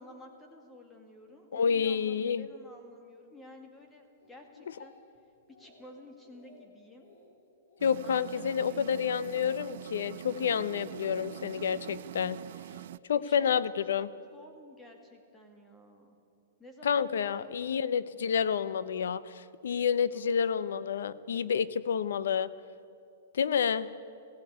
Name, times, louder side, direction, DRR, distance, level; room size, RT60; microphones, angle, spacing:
voice 1, 0.0-4.9 5.6-7.1 8.0-9.3 13.1-16.2 16.6-17.9 20.1-20.6, left 1 dB, 10° left, 3 dB, 2.2 m, -52 dB
voice 2, 1.5-2.5 7.8-12.4 13.1-14.1 16.8-22.5 23.3-23.9, left 7 dB, 85° left, 17 dB, 0.8 m, -29 dB
Speech, 4.2-5.2 5.5-5.9 6.2-6.6 7.0-7.3 7.7-8.0 8.3-8.7 9.1-9.4 9.8-10.6 11.4-11.7, left 3 dB, 70° left, 5.6 m, -60 dB
sound 1, 7.8-13.0, right 12 dB, 60° right, 0.4 m, -44 dB
18.0 x 15.5 x 9.5 m, 2.5 s
hypercardioid pair, 165°, 0 cm